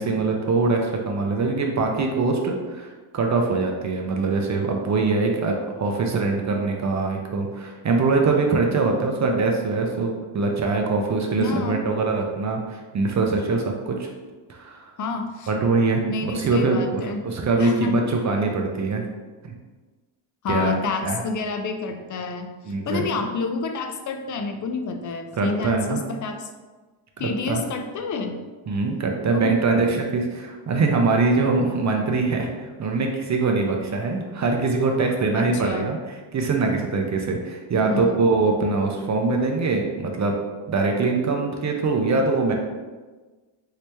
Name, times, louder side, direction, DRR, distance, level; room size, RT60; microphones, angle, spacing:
voice 1, 0.0-14.1 14.5-14.8 15.5-19.1 19.4-19.5 20.5-20.8 21.0-21.2 22.6-23.3 25.4-26.0 27.2-27.6 28.7-40.3 40.7-42.5, right 3 dB, 35° right, 2 dB, 0.5 m, -23 dB
voice 2, 11.4-11.8 15.0-15.5 16.1-17.2 17.6-18.3 20.4-22.5 22.8-26.5 27.2-28.3 29.3-29.8 35.3-35.9 37.8-38.2, left 4 dB, 40° left, 5 dB, 0.4 m, -29 dB
3.0 x 2.8 x 3.3 m, 1.3 s
cardioid pair, 100°, 49 cm